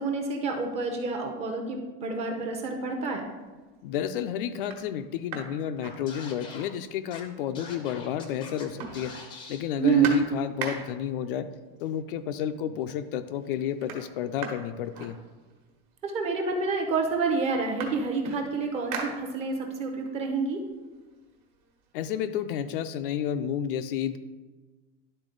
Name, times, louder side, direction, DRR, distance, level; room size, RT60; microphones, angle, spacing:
voice 1, 0.0-3.3 9.8-10.2 16.0-20.6, right 4 dB, 20° right, 2 dB, 0.7 m, -28 dB
sound 1, 3.2-3.6 4.1-4.2 4.6-6.7 7.0-7.1 7.3-8.2 8.4-11.2 12.1-12.2 12.6-13.1 13.3-15.8 16.6-16.7 17.0-19.8 20.2-21.9, right 5 dB, 55° right, 1.4 m, -40 dB
voice 2, 3.8-9.1 9.5-11.5 11.8-15.2 21.9-24.2, left 9 dB, 65° left, 10 dB, 0.5 m, -31 dB
Scratching (performance technique), 6.1-6.7 7.1-7.2 7.5-8.6 8.9-9.6, left 4 dB, 15° left, 0.6 m, -43 dB
11.0 x 4.0 x 3.8 m, 1.3 s
supercardioid pair, 175°, 30 cm